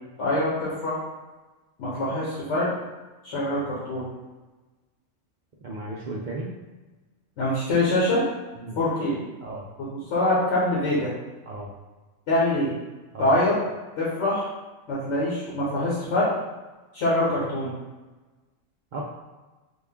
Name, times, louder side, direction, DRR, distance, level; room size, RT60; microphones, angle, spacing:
voice 1, 0.2-1.0 1.8-2.7 3.2-4.0 7.4-8.2 8.8-9.2 9.9-11.1 12.3-12.7 13.2-13.5 14.0-14.5 14.9-16.3 16.9-17.7, left 1 dB, 65° left, -7 dB, 1.3 m, -24 dB
voice 2, 5.6-6.5 8.6-8.8 9.4-9.6 11.5-11.7 13.1-13.3 18.9-19.1, right 2 dB, 85° right, -4 dB, 0.4 m, -34 dB
3.7 x 2.2 x 3.5 m, 1.2 s
omnidirectional pair, 1.4 m